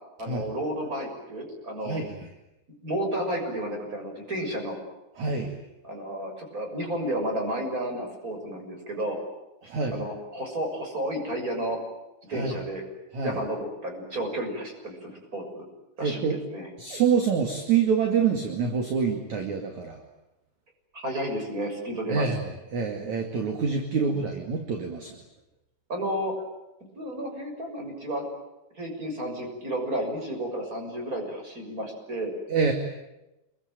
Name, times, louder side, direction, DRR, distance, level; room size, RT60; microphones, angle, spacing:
voice 1, 0.2-2.0 2.8-4.8 5.8-9.2 9.9-11.8 12.3-12.8 13.2-15.6 16.0-16.7 20.9-22.3 23.9-24.2 25.9-26.4 27.0-28.3 28.8-32.3, right 1 dB, 15° right, 3 dB, 6.5 m, -32 dB
voice 2, 1.8-2.3 5.2-5.6 9.6-10.0 12.3-12.5 13.1-13.4 16.0-16.4 16.8-20.0 22.1-25.2 32.5-32.7, right 6 dB, 45° right, 4 dB, 3.1 m, -26 dB
28.5 x 23.0 x 9.0 m, 0.96 s
omnidirectional pair, 5.5 m